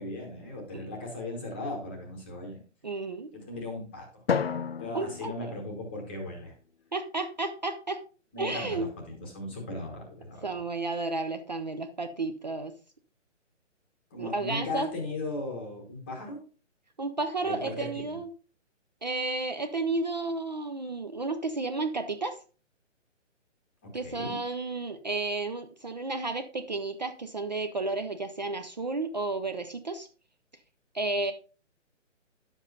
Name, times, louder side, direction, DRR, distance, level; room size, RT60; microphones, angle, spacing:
voice 1, 0.0-2.6 3.3-4.2 4.8-6.5 8.3-10.6 14.1-16.4 17.4-18.2 23.8-24.4, left 2 dB, 10° left, 1 dB, 1.1 m, -37 dB
voice 2, 2.8-3.3 4.9-5.5 6.9-8.0 8.4-8.9 10.4-12.7 14.2-14.9 17.0-18.3 19.0-22.4 23.9-30.1 30.9-31.3, right 3 dB, 35° right, 7 dB, 0.7 m, -32 dB
Drum, 4.3-6.6, left 6 dB, 55° left, 0.5 m, -33 dB
10.5 x 7.2 x 3.9 m, 0.35 s
hypercardioid pair, 175°, 38 cm